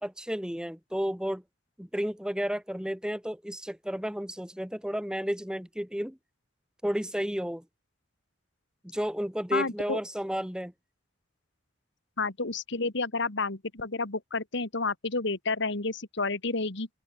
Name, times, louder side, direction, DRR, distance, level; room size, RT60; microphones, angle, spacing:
voice 1, 0.0-1.4 1.8-6.2 6.8-7.6 8.9-10.7, equal, 5° right, 1.4 m, -32 dB
voice 2, 9.5-10.0 12.2-16.9, left 3 dB, 65° left, 2.2 m, -30 dB
open air
head